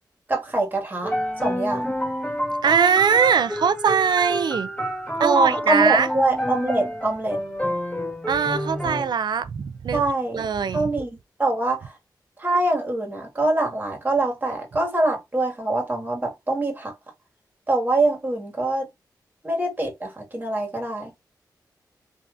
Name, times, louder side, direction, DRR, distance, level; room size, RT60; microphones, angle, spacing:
voice 1, 0.3-1.2 1.4-1.9 5.2-7.4 9.9-10.4 10.7-11.1 11.4-11.9 12.4-16.9 17.7-18.9 19.4-21.1, right 2 dB, 25° right, 1.6 m, -24 dB
sound 1, 1.0-9.1, equal, 10° left, 2.0 m, -28 dB
voice 2, 2.6-4.7 5.2-6.1 8.3-10.0 10.3-10.9, right 6 dB, 70° right, 0.4 m, -21 dB
3.1 x 2.7 x 2.4 m
cardioid pair, 55°, 8 cm